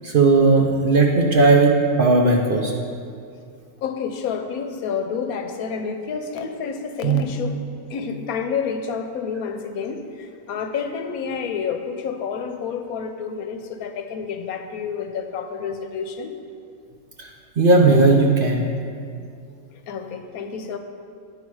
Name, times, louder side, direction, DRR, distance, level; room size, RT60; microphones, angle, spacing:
voice 1, 0.0-1.7 2.0-2.7 7.0-7.2 17.2-17.3 17.6-18.6, right 3 dB, 50° right, 0 dB, 0.7 m, -16 dB
voice 2, 3.8-7.6 7.9-16.4 19.9-20.8, left 6 dB, 85° left, 6 dB, 1.1 m, -29 dB
9.5 x 5.7 x 4.7 m, 2.3 s
omnidirectional pair, 1.5 m